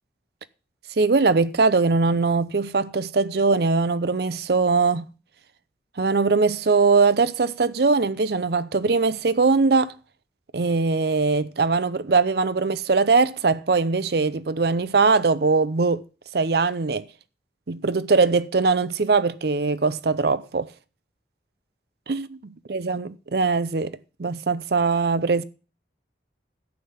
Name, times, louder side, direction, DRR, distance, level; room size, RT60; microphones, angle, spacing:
voice 1, 1.0-5.1 6.0-9.9 10.5-16.0 16.3-17.1 17.7-20.7 22.1-25.4, right 4 dB, 55° right, 0.6 m, -21 dB
11.5 x 7.6 x 5.7 m
head